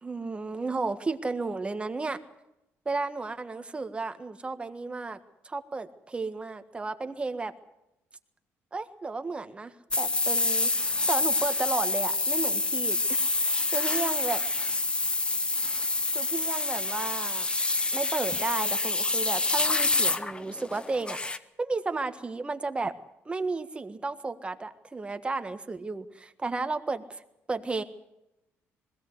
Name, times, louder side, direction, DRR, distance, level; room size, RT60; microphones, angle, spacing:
voice 1, 0.0-2.2 2.8-5.2 5.4-7.5 8.7-10.7 11.1-14.4 16.1-17.5 17.9-21.2 21.6-22.9 23.2-27.2 27.5-27.8, right 3 dB, 20° right, 9 dB, 1.6 m, -33 dB
sound 1, 9.9-21.4, left 3 dB, 20° left, 1.0 m, -27 dB
21.0 x 16.5 x 8.1 m, 0.89 s
cardioid pair, 105°, 5 cm